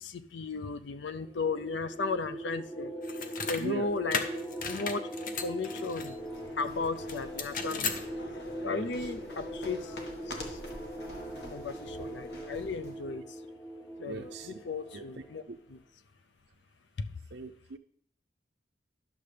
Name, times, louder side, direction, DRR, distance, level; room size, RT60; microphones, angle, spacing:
voice 1, 0.0-2.9 3.5-4.2 4.7-5.0 5.4-6.2 6.6-7.9 8.6-9.8 11.5-13.2 14.0-15.4, left 4 dB, 80° left, 12 dB, 0.5 m, -35 dB
sound 1, 1.1-15.5, equal, 15° left, 0.6 m, -41 dB
sound 2, 3.0-3.6 4.1-6.1 7.1-8.0, left 5 dB, 50° left, 0.7 m, -35 dB
voice 2, 3.6-3.9 8.7-9.1 14.1-14.6 14.9-15.6 17.3-17.8, right 3 dB, 70° right, 4 dB, 0.5 m, -40 dB
sound 3, 5.9-13.0, left 1 dB, 65° left, 1.3 m, -47 dB
11.0 x 6.6 x 3.3 m, 0.64 s
head